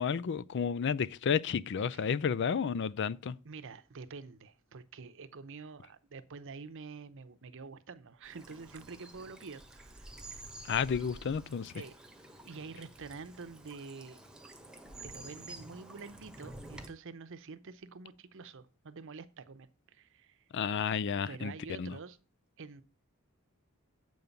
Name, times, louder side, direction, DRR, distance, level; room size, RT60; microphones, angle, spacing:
voice 1, 0.0-3.4 10.7-11.7 20.5-22.0, left 6 dB, 55° left, 0.4 m, -31 dB
voice 2, 3.4-10.1 11.8-11.9 12.4-14.2 15.0-20.4 21.3-22.2 22.6-22.8, right 4 dB, 65° right, 0.7 m, -47 dB
Bird vocalization bird call bird song / Stream, 8.2-16.9, right 1 dB, 5° right, 1.2 m, -50 dB
7.8 x 5.3 x 7.0 m
head